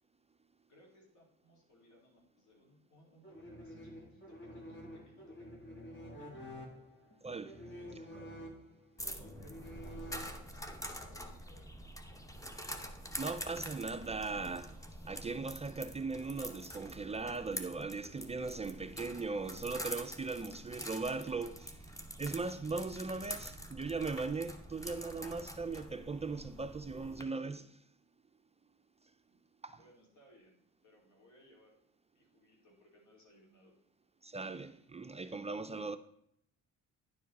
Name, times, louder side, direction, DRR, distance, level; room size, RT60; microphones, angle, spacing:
voice 1, 0.7-5.5 6.0-6.6 7.7-8.1 9.0-9.8 10.1-12.1 29.2-29.4 29.7-31.8 32.1-33.7, left 1 dB, 70° left, 3.3 m, -64 dB
sound 1, 3.2-10.7, equal, 40° left, 1.9 m, -49 dB
voice 2, 7.2-7.6 13.2-27.8 29.6-29.8 34.2-36.0, right 4 dB, 20° right, 0.4 m, -39 dB
sound 2, 9.0-27.2, equal, 10° left, 1.0 m, -46 dB
10.0 x 4.9 x 4.1 m
cardioid pair, 90°, 30 cm